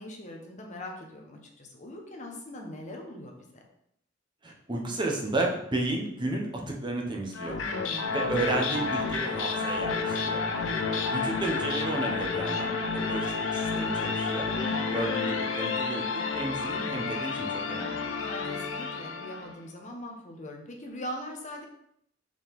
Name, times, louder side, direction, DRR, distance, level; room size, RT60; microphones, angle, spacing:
voice 1, 0.0-3.6 7.6-8.1 10.6-10.8 14.6-15.0 18.2-21.7, left 1 dB, 40° left, 2 dB, 1.0 m, -41 dB
voice 2, 4.4-7.6 8.1-10.4 11.1-14.5 14.9-18.0, right 2 dB, 25° right, 0 dB, 0.8 m, -32 dB
sound 1, 7.3-19.6, left 4 dB, 90° left, 0.7 m, -30 dB
5.0 x 3.9 x 5.2 m, 0.75 s
head